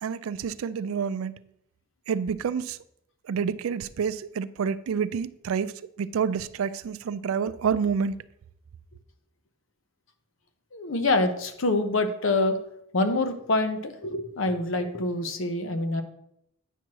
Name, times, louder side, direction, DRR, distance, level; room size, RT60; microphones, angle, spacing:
voice 1, 0.0-1.4 2.1-2.8 3.3-5.7 6.0-8.2, right 6 dB, 85° right, 0.4 m, -28 dB
voice 2, 10.7-12.6 12.9-16.0, left 2 dB, 65° left, 0.8 m, -26 dB
9.0 x 6.1 x 2.9 m
head